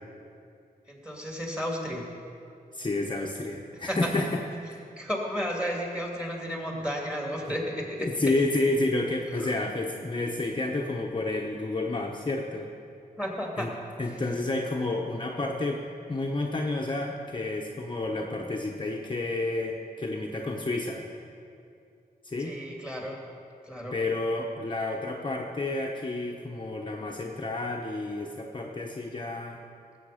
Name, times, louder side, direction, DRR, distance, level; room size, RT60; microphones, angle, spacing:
voice 1, 0.9-2.1 3.9-4.1 5.0-8.1 9.4-9.5 13.2-13.7 14.1-14.2 22.4-23.2 23.6-23.9, equal, 5° right, -1 dB, 2.5 m, -33 dB
voice 2, 2.7-4.4 7.5-7.6 8.0-12.7 13.6-13.7 14.0-21.0 22.2-22.6 23.9-29.6, left 2 dB, 30° left, 0 dB, 0.9 m, -30 dB
18.5 x 7.8 x 5.0 m, 2.5 s
wide cardioid pair, 105°, 16 cm